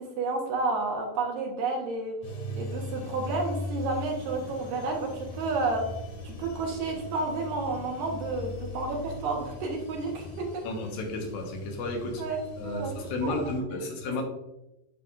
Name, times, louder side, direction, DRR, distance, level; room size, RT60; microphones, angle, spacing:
voice 1, 0.2-2.2 2.6-5.8 6.2-10.6 12.2-12.9 13.2-13.4, right 3 dB, 70° right, 0 dB, 2.6 m, -31 dB
sound 1, 2.2-13.6, left 1 dB, 50° left, 2.8 m, -39 dB
voice 2, 10.6-12.2 12.6-14.2, left 2 dB, 75° left, 1 dB, 2.8 m, -32 dB
9.2 x 5.6 x 2.4 m, 0.90 s
omnidirectional pair, 4.4 m